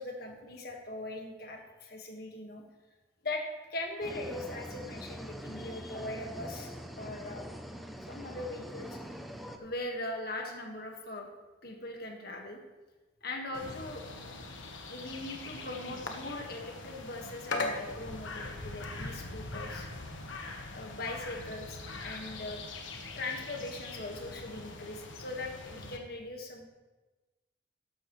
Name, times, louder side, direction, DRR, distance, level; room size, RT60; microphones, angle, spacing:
voice 1, 0.0-2.6 3.2-3.4 3.7-7.4 8.0-9.0 9.6-11.3 11.6-12.6 13.2-14.0 14.9-19.9 20.7-22.6 23.1-26.7, left 2 dB, 50° left, 2 dB, 1.7 m, -40 dB
sound 1, 4.0-9.6, equal, ahead, 0.6 m, -43 dB
sound 2, 13.5-26.0, left 2 dB, 80° left, 1.3 m, -41 dB
13.5 x 11.0 x 3.2 m, 1.2 s
head